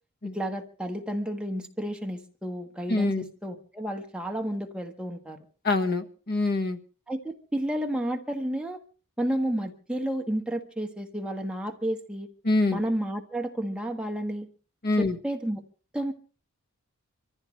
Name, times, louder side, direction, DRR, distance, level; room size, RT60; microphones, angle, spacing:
voice 1, 0.3-5.4 7.1-8.8 9.2-12.3 12.7-14.5 15.0-15.6 15.9-16.1, right 1 dB, 5° right, 2 dB, 1.4 m, -31 dB
voice 2, 2.9-3.2 5.6-6.8 12.4-12.8 14.8-15.2, left 2 dB, 45° left, 7 dB, 1.4 m, -25 dB
25.0 x 14.5 x 3.2 m, 0.38 s
head